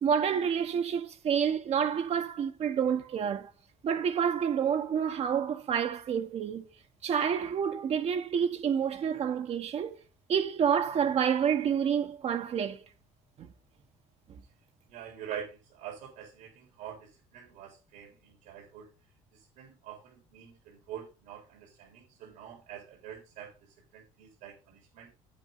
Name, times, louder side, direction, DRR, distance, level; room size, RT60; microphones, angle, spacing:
voice 1, 0.0-3.5 3.8-6.7 7.0-10.0 10.3-12.9 13.4-13.5 14.3-14.4, right 7 dB, 50° right, 1.1 m, -28 dB
voice 2, 14.9-18.9 19.3-25.1, right 9 dB, 85° right, 3.6 m, -45 dB
8.7 x 8.5 x 3.9 m
cardioid pair, 100°, 14 cm